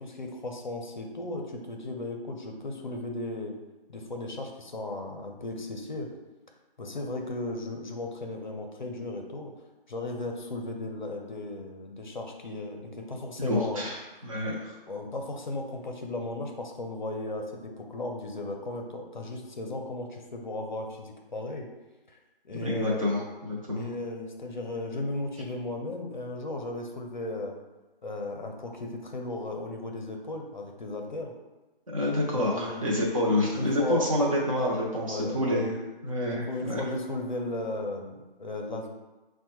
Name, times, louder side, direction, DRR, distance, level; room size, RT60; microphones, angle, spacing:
voice 1, 0.0-3.5 3.9-6.1 6.8-9.5 9.9-13.8 14.9-21.7 22.1-22.2 22.4-23.0 23.7-27.6 28.0-31.3 32.5-32.8 33.5-34.1 35.1-35.7 36.2-38.9, left 2 dB, 55° left, 2 dB, 0.5 m, -35 dB
voice 2, 13.4-14.7 22.5-23.8 31.9-35.7 36.0-36.8, left 1 dB, 35° right, -4 dB, 0.5 m, -28 dB
4.9 x 2.1 x 2.9 m, 1.1 s
figure-of-eight pair, 170°, 29 cm